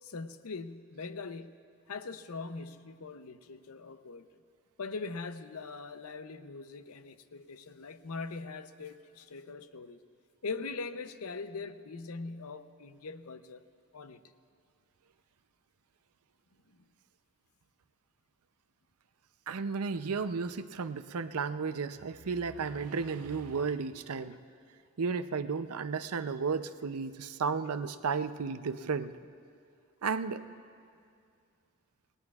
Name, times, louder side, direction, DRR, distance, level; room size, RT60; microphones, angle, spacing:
voice 1, 0.0-1.6 1.9-4.3 4.8-10.0 10.4-13.6 13.9-14.2 16.7-16.8, left 4 dB, 85° left, 10 dB, 0.7 m, -41 dB
voice 2, 19.5-24.4 25.0-29.2 30.0-30.4, right 5 dB, 90° right, 11 dB, 0.6 m, -33 dB
27.5 x 19.5 x 2.4 m, 2.3 s
head